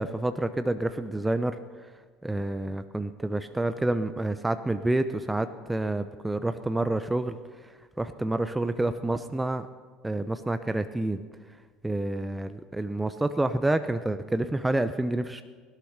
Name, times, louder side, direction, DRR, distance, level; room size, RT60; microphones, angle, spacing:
voice 1, 0.0-1.6 2.2-7.4 8.0-9.7 10.0-11.2 11.8-15.4, right 2 dB, 10° right, 10 dB, 0.6 m, -28 dB
16.5 x 11.5 x 5.9 m, 1.5 s
hypercardioid pair, 70°, 0 cm